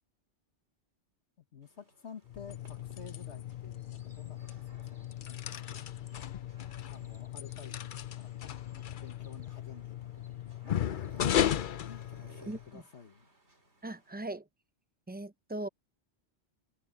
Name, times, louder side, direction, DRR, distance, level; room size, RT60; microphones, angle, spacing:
voice 1, 1.4-6.3 6.9-8.3 8.7-13.3, left 6 dB, 75° left, 1.8 m, -52 dB
sound 1, 1.6-14.2, right 2 dB, 70° right, 3.8 m, -61 dB
sound 2, 2.3-12.7, left 10 dB, 55° left, 0.7 m, -36 dB
sound 3, 3.8-11.4, right 1 dB, 45° right, 6.3 m, -69 dB
voice 2, 12.5-12.8 13.8-14.4 15.1-15.7, right 1 dB, 10° right, 0.5 m, -39 dB
omnidirectional pair, 1.2 m